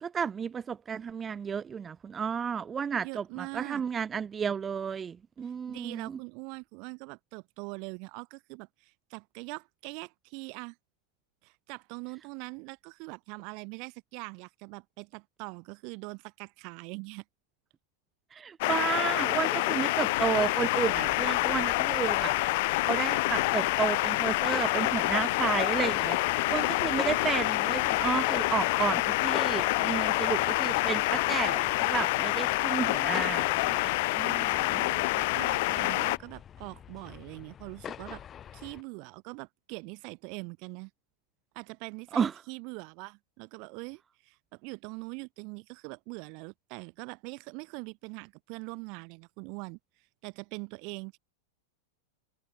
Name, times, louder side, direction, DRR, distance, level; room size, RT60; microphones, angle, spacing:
voice 1, 0.0-6.2 18.3-22.3 22.6-34.8 42.1-42.3, right 7 dB, 20° right, 0.5 m, -32 dB
voice 2, 3.0-3.8 5.4-10.8 11.4-17.2 34.3-34.4 34.8-38.2 38.5-40.9 41.5-49.8 50.2-51.2, right 33 dB, 50° right, 2.9 m, -42 dB
sound 1, 18.6-36.2, left 22 dB, 55° left, 0.3 m, -27 dB
Thunder, 19.1-30.0, left 12 dB, 75° left, 6.3 m, -49 dB
sound 2, 20.8-38.8, left 9 dB, 25° left, 1.7 m, -43 dB
hypercardioid pair, 130°, 0 cm